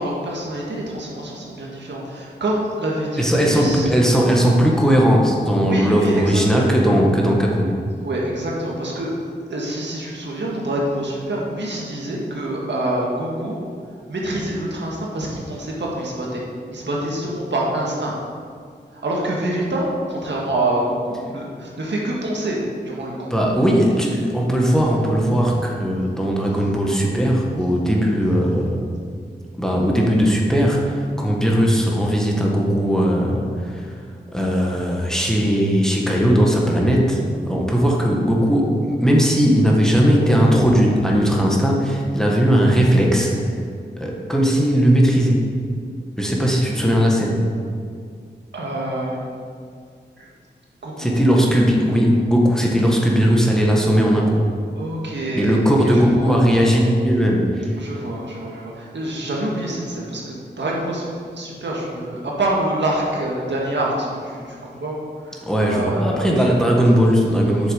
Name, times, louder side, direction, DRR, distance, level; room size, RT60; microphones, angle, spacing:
voice 1, 0.0-3.9 5.6-6.4 8.0-9.1 9.5-13.6 14.1-16.4 16.7-18.1 19.0-22.6 22.9-23.3 48.5-49.3 50.8-51.2 54.8-55.7 56.2-56.4 56.7-56.8 57.8-61.1 61.4-65.0 65.3-66.4, right 1 dB, 75° right, -3 dB, 1.8 m, -26 dB
voice 2, 3.2-7.8 23.3-28.8 29.6-34.0 34.3-37.2 37.5-38.7 39.0-43.3 44.0-45.5 46.2-47.4 51.0-54.4 55.3-57.8 65.5-67.7, equal, 5° left, -2 dB, 1.6 m, -18 dB
8.1 x 6.5 x 5.3 m, 2.2 s
cardioid pair, 65°, 18 cm